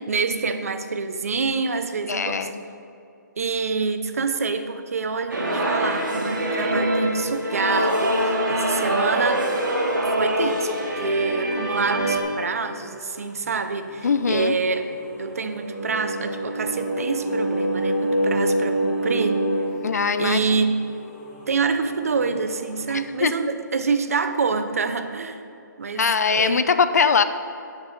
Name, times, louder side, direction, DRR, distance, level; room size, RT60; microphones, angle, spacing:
voice 1, 0.1-2.5 3.4-9.5 10.2-10.7 11.0-14.9 15.2-19.4 20.2-20.8 21.5-25.4 25.8-26.6, right 4 dB, 50° right, 9 dB, 0.6 m, -26 dB
voice 2, 2.1-2.6 14.0-14.5 19.8-20.6 22.9-23.3 26.0-27.2, left 5 dB, 55° left, 11 dB, 0.4 m, -22 dB
sound 1, 5.3-12.2, right 1 dB, 85° right, 1.9 m, -24 dB
sound 2, 12.1-23.1, equal, 20° left, 1.4 m, -45 dB
sound 3, 14.8-19.6, right 1 dB, 15° right, 2.0 m, -25 dB
8.8 x 6.7 x 4.1 m, 2.7 s
hypercardioid pair, 175°, 10 cm